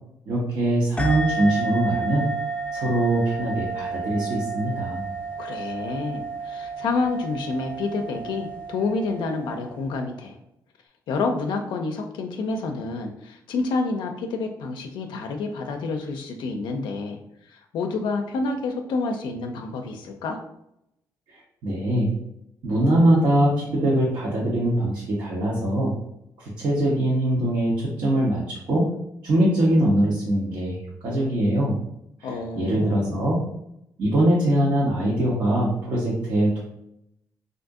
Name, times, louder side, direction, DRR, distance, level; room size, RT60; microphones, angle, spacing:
voice 1, 0.3-2.3 2.7-5.0 21.3-22.1 22.6-25.9 26.4-28.9 29.2-30.8 31.0-31.8 32.6-33.4 34.0-36.6, right 1 dB, 65° right, -6 dB, 1.0 m, -22 dB
sound 1, 1.0-10.0, right 3 dB, 15° left, 0.4 m, -31 dB
voice 2, 5.4-10.4 11.1-17.2 17.5-20.4 32.2-33.2, left 3 dB, 80° left, 4 dB, 0.4 m, -28 dB
2.6 x 2.6 x 3.5 m, 0.79 s
cardioid pair, 75°, 8 cm